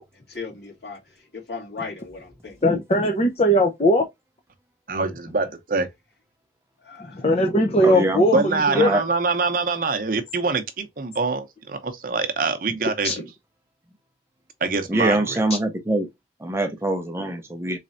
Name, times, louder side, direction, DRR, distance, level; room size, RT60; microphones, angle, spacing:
voice 1, 0.1-2.6 6.8-7.2, left 4 dB, 70° left, 2.6 m, -37 dB
voice 2, 2.6-4.0 7.1-8.9 13.0-13.2, equal, 35° left, 0.6 m, -19 dB
voice 3, 4.9-5.9 8.3-13.2 14.6-15.4, right 4 dB, 50° right, 0.7 m, -24 dB
voice 4, 7.8-8.5 8.7-9.0 14.9-16.1 16.4-17.8, right 1 dB, 15° right, 0.5 m, -24 dB
4.1 x 3.2 x 2.5 m
head